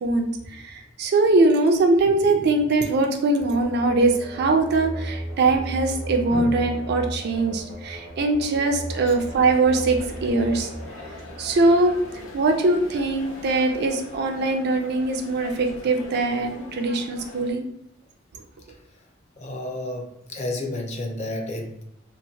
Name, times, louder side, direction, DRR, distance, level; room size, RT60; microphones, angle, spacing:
voice 1, 0.0-10.7 11.4-11.9 12.3-17.6, right 2 dB, 55° right, 4 dB, 0.4 m, -22 dB
sound 1, 3.4-12.1, right 1 dB, 85° right, 0.9 m, -36 dB
Drum, 6.3-8.2, equal, 65° left, 0.9 m, -37 dB
sound 2, 8.9-17.5, left 1 dB, 80° left, 0.5 m, -42 dB
voice 2, 19.4-21.8, left 1 dB, 35° left, 2 dB, 0.4 m, -31 dB
2.9 x 2.1 x 2.7 m, 0.78 s
head